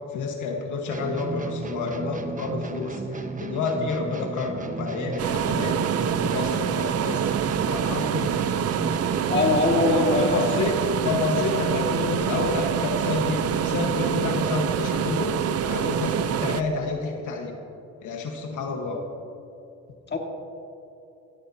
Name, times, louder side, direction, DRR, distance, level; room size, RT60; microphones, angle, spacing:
voice 1, 0.1-7.3 7.6-8.5 9.7-17.5 18.0-19.0, left 4 dB, 75° left, 2 dB, 1.5 m, -29 dB
sound 1, 0.9-10.3, right 3 dB, 25° right, 1.0 m, -34 dB
sound 2, 5.2-16.6, right 8 dB, 55° right, 0.6 m, -26 dB
voice 2, 9.3-10.4 20.1-20.2, left 3 dB, 35° left, 1 dB, 2.1 m, -22 dB
16.0 x 15.5 x 2.8 m, 2.9 s
cardioid pair, 90°, 30 cm